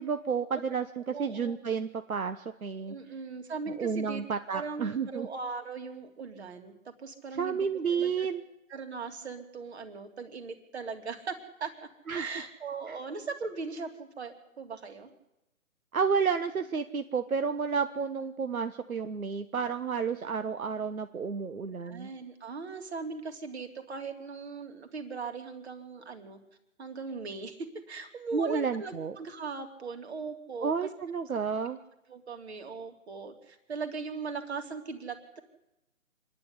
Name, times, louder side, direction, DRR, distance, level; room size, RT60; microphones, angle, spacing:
voice 1, 0.0-2.9 3.8-5.3 7.3-8.4 12.1-12.3 15.9-22.1 28.3-29.2 30.6-31.8, right 6 dB, 75° right, 9 dB, 1.3 m, -31 dB
voice 2, 1.1-1.6 2.9-4.2 4.5-8.3 8.7-11.7 12.1-15.1 21.8-26.4 26.8-30.7 32.1-35.4, right 4 dB, 50° right, 6 dB, 3.3 m, -39 dB
26.5 x 10.5 x 9.8 m, 0.90 s
figure-of-eight pair, 150°, 42 cm